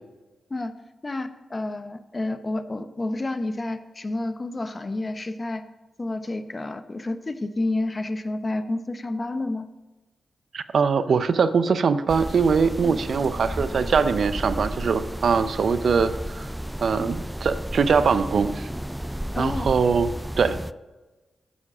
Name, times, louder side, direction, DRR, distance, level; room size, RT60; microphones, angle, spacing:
voice 1, 1.0-5.6 6.0-9.7 12.8-13.0 17.0-17.1 19.3-19.7, left 2 dB, 35° left, 10 dB, 0.8 m, -30 dB
voice 2, 10.5-16.5 16.8-18.7 19.4-20.1 20.4-20.6, right 5 dB, 70° right, 12 dB, 0.5 m, -22 dB
sound 1, 12.1-20.7, equal, 5° right, 0.3 m, -33 dB
8.4 x 7.3 x 5.0 m, 1.1 s
supercardioid pair, 50°, 0 cm